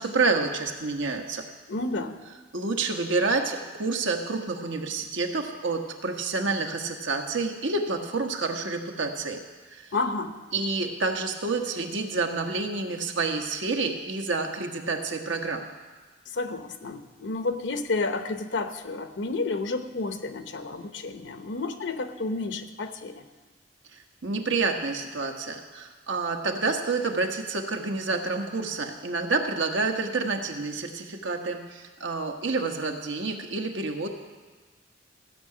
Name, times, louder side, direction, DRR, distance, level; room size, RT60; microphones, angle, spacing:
voice 1, 0.0-1.4 2.5-9.4 9.7-9.9 10.5-15.7 24.2-34.1, right 3 dB, 80° right, 3 dB, 1.3 m, -28 dB
voice 2, 1.7-2.2 9.9-10.3 16.3-23.2, left 3 dB, 70° left, 8 dB, 0.9 m, -31 dB
15.5 x 5.9 x 8.5 m, 1.4 s
head